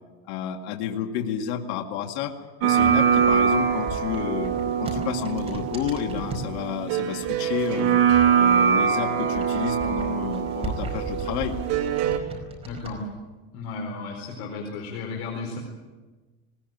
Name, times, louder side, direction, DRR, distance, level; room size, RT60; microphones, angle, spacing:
voice 1, 0.3-2.3 2.6-4.5 4.8-8.0 8.3-11.6, left 9 dB, 75° left, 3 dB, 2.2 m, -30 dB
sound 1, 2.6-12.2, right 7 dB, 55° right, 2.8 m, -23 dB
sound 2, 2.7-6.5 7.2-8.5 8.8-12.9, right 2 dB, 20° right, 4.8 m, -37 dB
voice 2, 12.7-13.1 13.5-15.6, left 4 dB, 55° left, 0 dB, 4.3 m, -34 dB
20.5 x 19.5 x 9.3 m, 1.3 s
cardioid pair, 165°, 32 cm